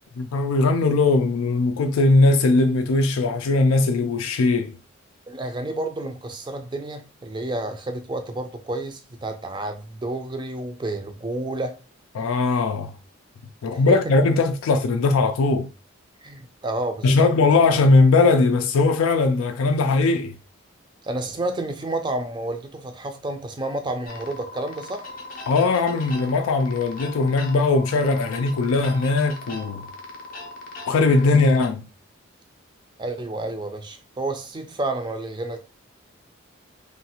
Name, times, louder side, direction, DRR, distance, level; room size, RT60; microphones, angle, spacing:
voice 1, 0.2-4.7 12.2-12.9 13.6-15.7 17.0-20.3 25.5-29.9 30.9-31.8, left 3 dB, 85° left, 0.4 m, -19 dB
voice 2, 5.3-11.8 13.7-14.0 16.2-17.3 21.0-25.1 31.2-31.5 33.0-35.6, right 2 dB, 20° right, 0.4 m, -30 dB
sound 1, 24.0-31.7, left 2 dB, 40° left, 0.6 m, -39 dB
3.2 x 2.4 x 2.9 m
head